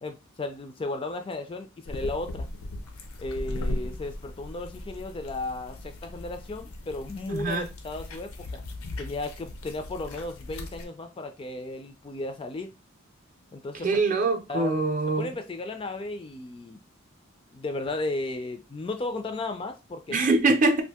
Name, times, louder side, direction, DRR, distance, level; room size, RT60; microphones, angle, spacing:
voice 1, 0.0-2.5 3.2-8.6 9.0-12.7 13.5-14.0 14.5-14.8 15.2-16.8 17.5-20.2, left 2 dB, 25° left, 0.3 m, -35 dB
sound 1, 1.9-10.9, left 1 dB, 90° left, 0.6 m, -38 dB
voice 2, 7.3-7.7 13.8-15.3 20.1-20.8, right 3 dB, 40° right, 0.5 m, -23 dB
2.6 x 2.5 x 3.4 m
head